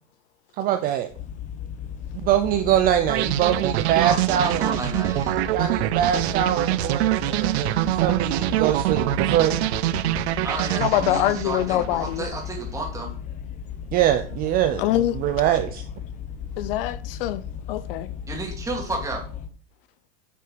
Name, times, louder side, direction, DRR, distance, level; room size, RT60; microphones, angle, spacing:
voice 1, 0.6-1.1 2.2-4.7 5.5-9.7 13.9-15.8, right 11 dB, 25° right, 0.6 m, -23 dB
sound 1, 1.1-19.5, left 8 dB, 20° left, 0.9 m, -36 dB
sound 2, 3.1-12.1, right 15 dB, 70° right, 0.7 m, -25 dB
voice 2, 4.0-5.4 10.4-13.1 18.3-19.2, right 2 dB, 10° right, 2.3 m, -32 dB
voice 3, 10.8-12.3 14.8-15.1 16.6-17.4 17.7-18.1, left 13 dB, 55° left, 0.6 m, -24 dB
9.7 x 5.5 x 5.1 m
supercardioid pair, 160°, 34 cm